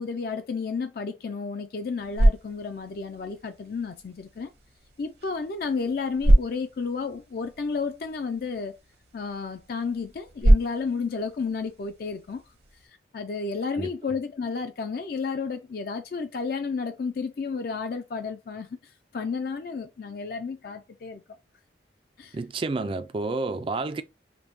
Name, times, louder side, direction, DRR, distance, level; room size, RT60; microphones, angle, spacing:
voice 1, 0.0-4.5 5.0-8.8 9.1-12.4 13.1-18.7 19.1-21.2 22.2-22.4, left 4 dB, 55° left, 0.4 m, -32 dB
sound 1, 1.8-12.9, right 1 dB, 60° right, 0.9 m, -27 dB
voice 2, 22.3-24.0, right 3 dB, 30° right, 0.3 m, -29 dB
5.1 x 2.1 x 3.0 m
head